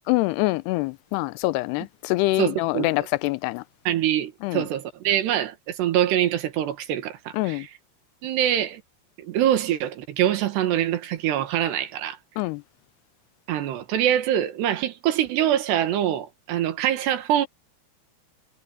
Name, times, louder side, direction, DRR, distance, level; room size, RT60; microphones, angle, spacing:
voice 1, 0.1-3.6 4.4-4.6 7.3-7.7 12.4-12.6, left 20 dB, 85° left, 2.7 m, -25 dB
voice 2, 2.4-3.1 3.9-7.7 8.2-8.8 9.2-12.2 13.5-17.5, right 11 dB, 85° right, 3.9 m, -24 dB
omnidirectional pair, 4.7 m